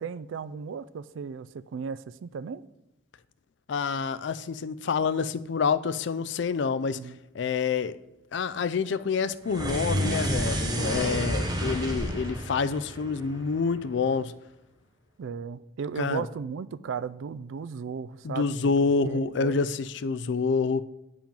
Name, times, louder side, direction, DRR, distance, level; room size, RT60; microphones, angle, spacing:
voice 1, 0.0-2.6 6.9-7.2 15.2-18.7 19.0-19.6, right 6 dB, 75° right, 0.3 m, -35 dB
voice 2, 3.7-8.0 8.3-14.3 16.0-16.3 18.2-20.8, left 5 dB, 65° left, 0.4 m, -27 dB
sound 1, 9.4-13.9, right 1 dB, 20° right, 1.0 m, -30 dB
8.9 x 5.0 x 5.3 m
head